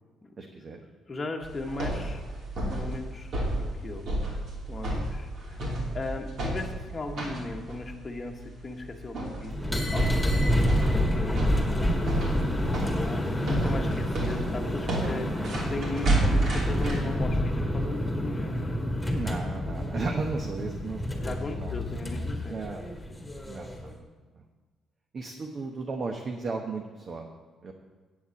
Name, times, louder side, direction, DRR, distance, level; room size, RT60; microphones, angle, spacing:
voice 1, 0.4-0.8 14.2-14.3 19.1-21.8 22.5-22.9 23.5-24.0 24.3-24.4 25.1-27.3 27.6-27.7, right 3 dB, 40° right, 3 dB, 1.1 m, -35 dB
voice 2, 1.1-2.2 2.7-4.0 4.7-9.5 9.9-11.9 12.9-18.6 21.2-22.6, left 2 dB, 25° left, 2 dB, 1.2 m, -37 dB
sound 1, 1.4-17.0, right 1 dB, 60° right, 3.0 m, -31 dB
sound 2, 9.5-23.9, left 1 dB, 5° left, 1.9 m, -29 dB
8.6 x 7.2 x 8.3 m, 1.4 s
cardioid pair, 125°, 0 cm